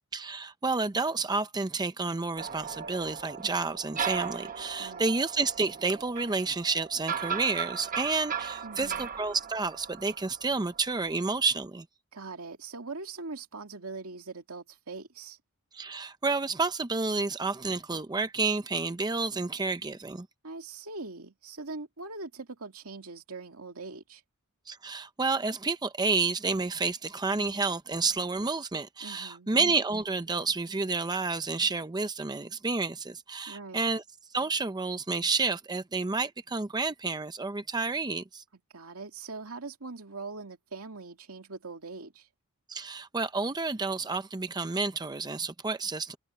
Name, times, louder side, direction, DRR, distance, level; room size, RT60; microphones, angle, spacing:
voice 1, 0.1-11.8 15.7-20.3 24.7-34.0 34.3-38.4 42.7-46.2, right 3 dB, 20° right, 0.6 m, -30 dB
sound 1, 2.4-11.2, right 7 dB, 40° right, 0.9 m, -37 dB
voice 2, 4.8-5.2 8.6-9.1 12.1-15.4 20.4-24.2 29.0-29.5 33.5-33.8 38.7-42.3, right 3 dB, 75° right, 2.4 m, -42 dB
head